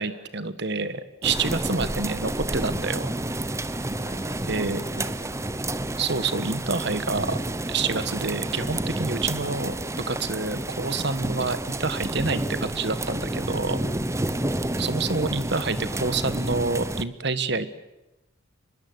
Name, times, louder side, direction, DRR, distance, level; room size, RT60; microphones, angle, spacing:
voice 1, 0.0-3.1 4.5-4.8 6.0-7.4 7.7-9.7 10.1-13.8 14.8-17.7, right 4 dB, 55° right, 13 dB, 1.4 m, -28 dB
sound 1, 1.2-17.0, right 1 dB, 15° right, 0.8 m, -30 dB
voice 2, 3.9-5.4 13.8-14.0, left 1 dB, 55° left, 1 dB, 5.3 m, -44 dB
24.5 x 21.5 x 8.0 m, 0.99 s
head